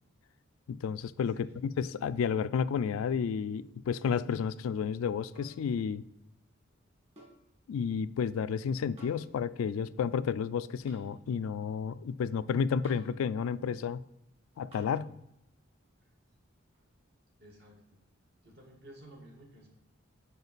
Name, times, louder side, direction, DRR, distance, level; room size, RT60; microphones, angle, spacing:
voice 1, 0.7-6.0 7.7-14.0 14.6-15.1, left 6 dB, 90° left, 0.3 m, -31 dB
voice 2, 1.3-1.6 16.0-16.1 17.4-18.0 18.4-19.7, right 1 dB, 55° right, 1.3 m, -53 dB
sound 1, 5.3-5.6 7.2-7.4 9.0-9.3 10.9-11.1 12.8-13.2 14.7-15.0 16.7-16.8, equal, 30° right, 1.8 m, -55 dB
6.9 x 4.8 x 4.0 m
head